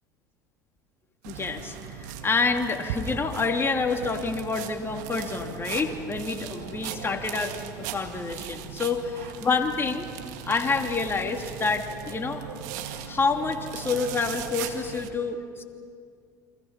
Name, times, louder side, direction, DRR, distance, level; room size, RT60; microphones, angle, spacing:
sound 1, 1.2-15.1, right 8 dB, 70° right, 2.1 m, -38 dB
voice 1, 1.3-10.1 10.4-12.5 13.1-15.6, left 4 dB, 25° left, 3 dB, 2.9 m, -28 dB
30.0 x 24.5 x 5.8 m, 2.3 s
hypercardioid pair, 75°, 10 cm